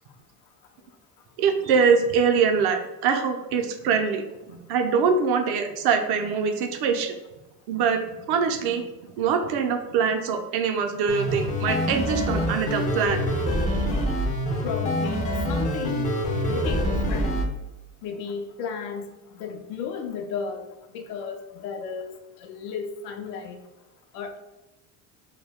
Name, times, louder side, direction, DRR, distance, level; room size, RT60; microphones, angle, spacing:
voice 1, 1.4-7.2 7.7-8.8 9.2-13.3 13.7-13.8, right 6 dB, 55° right, 5 dB, 0.5 m, -23 dB
sound 1, 11.1-17.4, equal, 20° left, 0.3 m, -26 dB
voice 2, 14.6-17.4 18.0-20.7 20.9-22.1 22.4-23.6 24.1-24.4, left 6 dB, 75° left, 5 dB, 0.5 m, -34 dB
2.2 x 2.2 x 3.4 m, 1.0 s
supercardioid pair, 100°, 47 cm